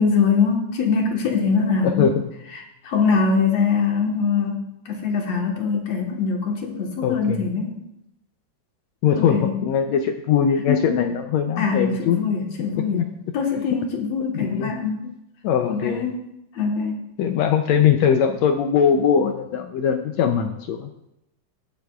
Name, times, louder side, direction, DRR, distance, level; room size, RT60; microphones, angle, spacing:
voice 1, 0.0-2.1 2.8-7.8 9.1-9.5 10.7-10.8 11.6-13.0 13.3-15.0 15.7-16.3 16.5-17.0, left 5 dB, 60° left, 1 dB, 2.3 m, -22 dB
voice 2, 1.8-2.3 7.0-7.4 9.0-12.2 12.9-13.1 14.4-14.7 15.4-16.0 17.2-20.9, left 8 dB, 80° left, 5 dB, 1.6 m, -21 dB
19.0 x 7.5 x 2.4 m, 0.83 s
omnidirectional pair, 3.6 m